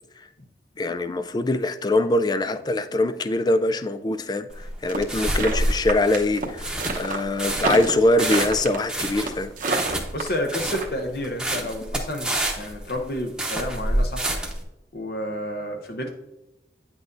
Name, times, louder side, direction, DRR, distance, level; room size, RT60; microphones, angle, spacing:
voice 1, 0.8-9.5, left 2 dB, 25° left, 0.3 m, -23 dB
sound 1, 4.5-14.6, right 1 dB, 5° right, 0.9 m, -28 dB
sound 2, 4.9-10.9, right 3 dB, 45° right, 0.9 m, -28 dB
voice 2, 10.1-14.4 14.9-16.1, left 1 dB, 60° left, 0.7 m, -30 dB
9.3 x 6.1 x 2.6 m
head